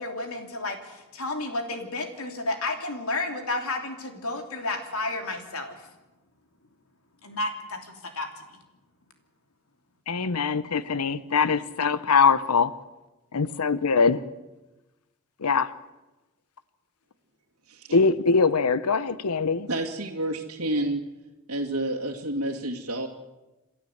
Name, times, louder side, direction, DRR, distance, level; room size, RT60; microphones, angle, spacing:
voice 1, 0.0-5.9 7.2-8.6, left 2 dB, 70° left, 5 dB, 3.0 m, -32 dB
voice 2, 10.1-12.7 13.3-14.2 15.4-15.8 17.9-19.7, left 5 dB, 90° left, 16 dB, 0.8 m, -22 dB
voice 3, 19.7-21.0 21.5-23.1, right 1 dB, 70° right, -3 dB, 2.1 m, -29 dB
27.0 x 12.5 x 7.9 m, 1.1 s
head